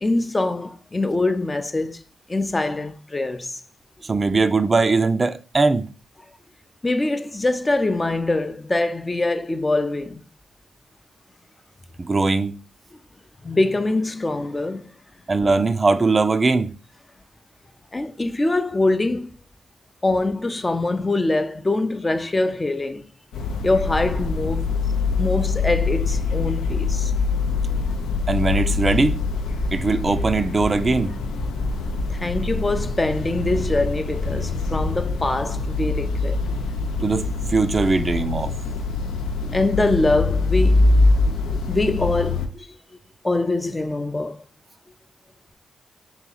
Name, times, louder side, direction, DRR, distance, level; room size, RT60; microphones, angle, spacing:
voice 1, 0.0-2.0 2.3-3.6 6.8-10.2 13.4-14.9 17.9-19.3 20.0-23.1 23.6-24.7 25.2-27.1 32.1-36.4 39.5-40.9 41.3-42.7 43.2-44.4, left 2 dB, 30° left, 0.5 m, -23 dB
voice 2, 4.1-5.9 12.0-12.5 15.3-16.7 28.3-29.2 29.7-31.1 37.0-38.5, right 3 dB, 35° right, 0.3 m, -20 dB
sound 1, 23.3-42.5, left 3 dB, 85° left, 0.4 m, -24 dB
2.9 x 2.8 x 3.8 m
supercardioid pair, 45°, 0 cm